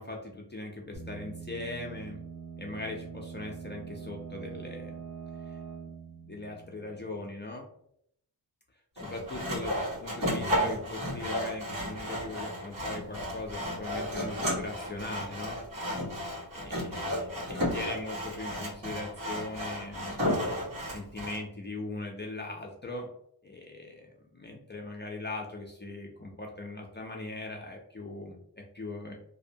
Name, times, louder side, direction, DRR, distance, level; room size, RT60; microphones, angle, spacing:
voice 1, 0.0-2.2 2.6-5.0 5.5-5.6 6.2-7.7 9.0-15.6 16.5-20.5 20.9-23.1 23.4-29.1, left 2 dB, 25° left, 0 dB, 0.3 m, -40 dB
sound 1, 0.9-7.5, right 5 dB, 55° right, 0.6 m, -44 dB
Sawing, 9.0-21.4, equal, 80° right, 1.4 m, -33 dB
2.6 x 2.1 x 2.6 m, 0.70 s
wide cardioid pair, 105°, 44 cm